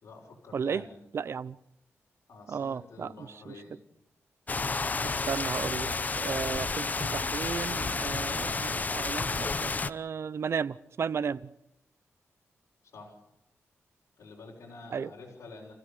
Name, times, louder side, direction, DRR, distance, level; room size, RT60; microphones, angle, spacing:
voice 1, 0.0-1.0 2.3-3.8 12.9-13.2 14.2-15.7, left 3 dB, 75° left, 5.3 m, -48 dB
voice 2, 0.5-0.8 1.1-1.6 2.5-3.5 5.0-11.5 14.9-15.1, right 6 dB, 60° right, 0.8 m, -34 dB
sound 1, 4.5-9.9, left 4 dB, 35° left, 0.8 m, -31 dB
30.0 x 16.0 x 6.9 m
wide cardioid pair, 100°, 5 cm